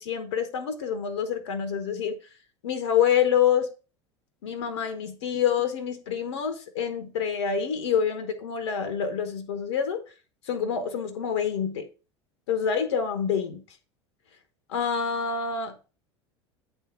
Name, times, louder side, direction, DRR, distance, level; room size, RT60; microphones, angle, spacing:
voice 1, 0.0-2.2 2.6-3.7 4.4-10.0 10.5-11.9 12.5-13.6 14.7-15.9, left 7 dB, 70° left, 0.9 m, -27 dB
9.1 x 3.5 x 5.6 m
figure-of-eight pair, 75°, 15 cm